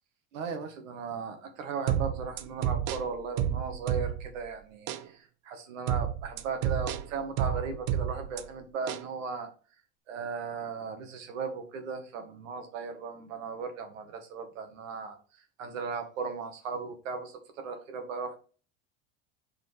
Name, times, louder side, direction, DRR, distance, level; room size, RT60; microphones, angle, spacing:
voice 1, 0.3-9.5 10.1-18.4, right 5 dB, 85° right, 6 dB, 1.7 m, -37 dB
sound 1, 1.9-4.4 4.9-5.1 5.9-8.4 8.9-9.1, right 10 dB, 60° right, 0.7 m, -30 dB
5.2 x 4.4 x 5.5 m, 0.39 s
supercardioid pair, 105°, 38 cm